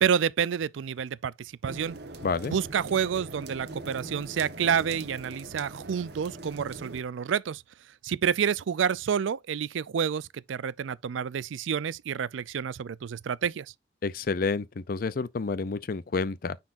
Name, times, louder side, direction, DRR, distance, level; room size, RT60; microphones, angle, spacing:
voice 1, 0.0-2.0 2.5-7.6 8.0-13.7, right 7 dB, 85° right, 0.4 m, -29 dB
sound 1, 1.7-7.0, right 2 dB, 60° right, 1.2 m, -42 dB
voice 2, 2.2-2.6 14.0-16.6, left 4 dB, 50° left, 0.5 m, -29 dB
9.5 x 4.2 x 2.5 m
head